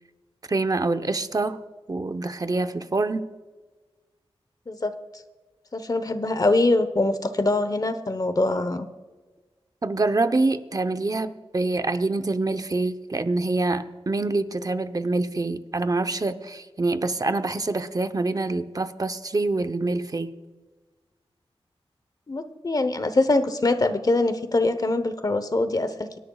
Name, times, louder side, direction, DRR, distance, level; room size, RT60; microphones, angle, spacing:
voice 1, 0.5-1.6 1.9-3.3 9.8-20.3, right 2 dB, 35° right, 8 dB, 0.8 m, -26 dB
voice 2, 5.7-8.9 22.3-26.2, left 2 dB, 40° left, 10 dB, 1.0 m, -23 dB
25.5 x 10.5 x 2.4 m, 1.3 s
wide cardioid pair, 75°, 10 cm